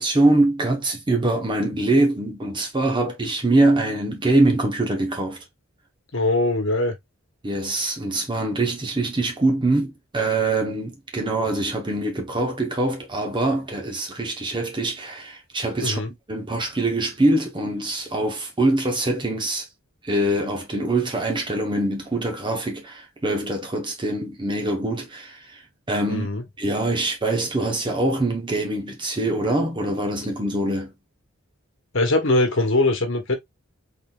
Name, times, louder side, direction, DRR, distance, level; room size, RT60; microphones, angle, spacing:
voice 1, 0.0-5.4 7.4-16.0 16.3-19.7 20.0-26.3 26.6-30.9, right 2 dB, 25° right, 0.9 m, -23 dB
voice 2, 6.1-6.9 15.8-16.1 26.1-26.4 31.9-33.3, left 2 dB, 60° left, 1.2 m, -21 dB
4.0 x 3.8 x 2.4 m
head